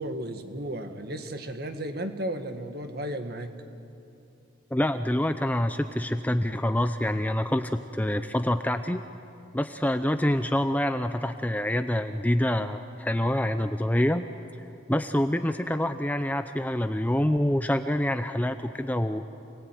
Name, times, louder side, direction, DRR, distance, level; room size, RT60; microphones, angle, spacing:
voice 1, 0.0-3.5, right 1 dB, 50° right, 6 dB, 1.9 m, -34 dB
voice 2, 4.7-9.0 9.5-14.2 14.9-19.2, left 1 dB, 10° left, 9 dB, 0.6 m, -26 dB
28.0 x 19.5 x 9.3 m, 2.7 s
head